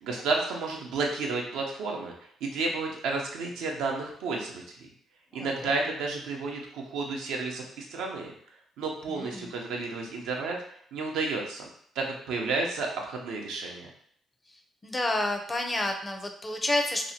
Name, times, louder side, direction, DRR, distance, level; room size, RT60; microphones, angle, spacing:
voice 1, 0.0-2.1 2.4-4.9 5.3-8.3 8.8-10.6 10.9-11.7 12.0-13.9, right 3 dB, 90° right, 0 dB, 0.5 m, -31 dB
voice 2, 5.3-5.8 9.1-9.5 14.8-17.1, left 1 dB, 20° left, 4 dB, 0.4 m, -30 dB
2.7 x 2.1 x 2.7 m, 0.63 s
cardioid pair, 90°, 0 cm